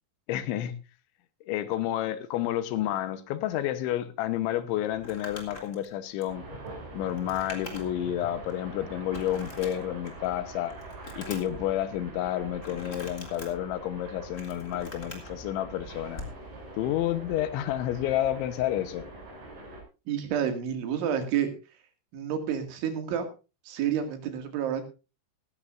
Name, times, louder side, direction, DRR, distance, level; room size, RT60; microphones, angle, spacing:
voice 1, 0.3-0.8 1.5-6.4 6.9-10.7 11.2-16.2 16.7-19.1, left 12 dB, 80° left, 3.4 m, -30 dB
Crumpling crinkling, 4.9-8.1 8.5-8.6 9.1-10.3 10.6-11.6 12.6-13.5 14.1-15.3 16.1-16.4, left 2 dB, 20° left, 2.4 m, -43 dB
sound 1, 6.3-19.8, right 2 dB, 45° right, 8.4 m, -44 dB
voice 2, 20.1-21.5 22.1-23.3 23.7-24.8, right 8 dB, 80° right, 4.6 m, -29 dB
17.5 x 14.5 x 2.5 m
omnidirectional pair, 5.4 m